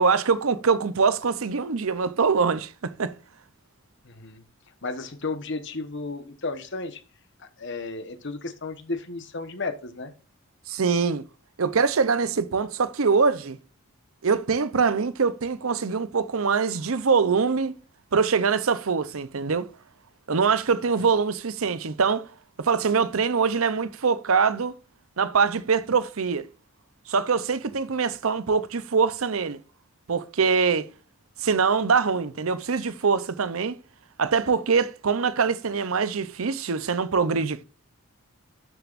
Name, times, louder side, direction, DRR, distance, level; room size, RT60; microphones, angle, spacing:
voice 1, 0.0-3.1 10.7-11.2 11.6-13.6 14.2-17.7 18.1-19.7 20.3-22.3 22.6-24.7 25.2-26.5 27.1-29.6 30.1-30.9 31.4-33.8 34.2-37.6, right 5 dB, 80° right, 0.7 m, -23 dB
voice 2, 4.0-4.4 4.8-7.0 7.4-10.1, left 3 dB, 55° left, 1.2 m, -33 dB
12.0 x 6.9 x 2.6 m
head